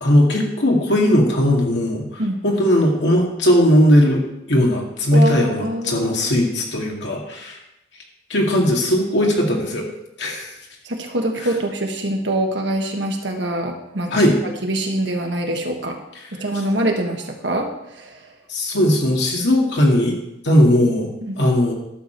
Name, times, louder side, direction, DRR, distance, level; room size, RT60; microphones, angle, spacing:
voice 1, 0.0-4.2 4.5-7.6 8.3-9.8 10.2-10.5 14.1-14.3 18.5-20.2 20.4-21.1 21.4-21.7, left 1 dB, 70° left, 0 dB, 2.1 m, -18 dB
voice 2, 5.1-6.2 10.8-14.3 14.6-16.0 16.3-18.2 21.2-21.4, right 1 dB, 70° right, 2 dB, 1.5 m, -24 dB
11.5 x 7.1 x 4.5 m, 0.86 s
head